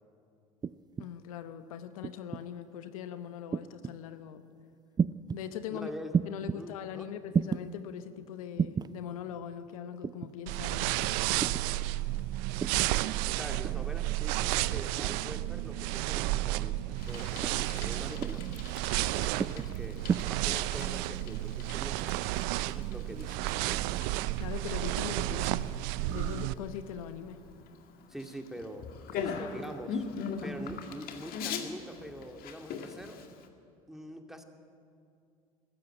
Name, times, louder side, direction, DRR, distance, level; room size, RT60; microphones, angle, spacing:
sound 1, 0.6-1.1 2.0-2.4 3.5-4.0 5.0-5.4 6.1-6.6 7.3-7.6 8.6-8.9 10.0-10.3 11.4-11.7 12.6-12.9 13.6-13.9 15.0-15.3 16.2-16.5 17.4-17.7 18.2-18.5 19.4-19.7 20.1-20.2, right 6 dB, 25° right, 0.5 m, -32 dB
voice 1, 1.0-4.4 5.3-5.9 6.3-11.2 24.4-25.7 26.0-27.4 29.4-29.5, left 9 dB, 75° left, 11 dB, 1.0 m, -41 dB
voice 2, 5.7-6.1 6.5-7.1 13.2-18.4 19.0-22.2 22.5-24.0 28.1-28.9 29.1-30.1 30.4-33.2 33.9-34.4, equal, ahead, 4 dB, 2.4 m, -44 dB
sound 2, 10.5-26.5, right 17 dB, 65° right, 0.6 m, -32 dB
Bicycle, 17.0-33.5, left 5 dB, 55° left, 2.1 m, -42 dB
22.0 x 13.5 x 9.0 m, 2.5 s
hypercardioid pair, 70°, 18 cm